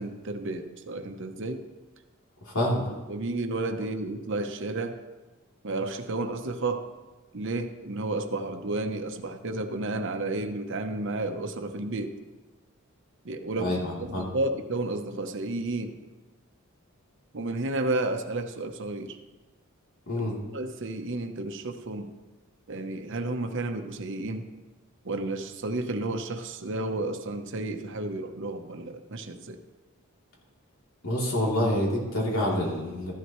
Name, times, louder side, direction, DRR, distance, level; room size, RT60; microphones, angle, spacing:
voice 1, 0.0-1.6 2.6-2.7 3.1-5.0 5.6-6.9 7.3-12.2 13.2-16.0 17.3-19.2 20.1-20.2 20.5-22.1 22.7-24.5 25.0-29.6, right 2 dB, 60° right, 6 dB, 0.9 m, -32 dB
voice 2, 2.4-2.9 13.6-14.3 20.1-20.3 31.0-33.1, left 1 dB, 75° left, -4 dB, 3.2 m, -27 dB
14.0 x 11.5 x 3.1 m, 1.2 s
head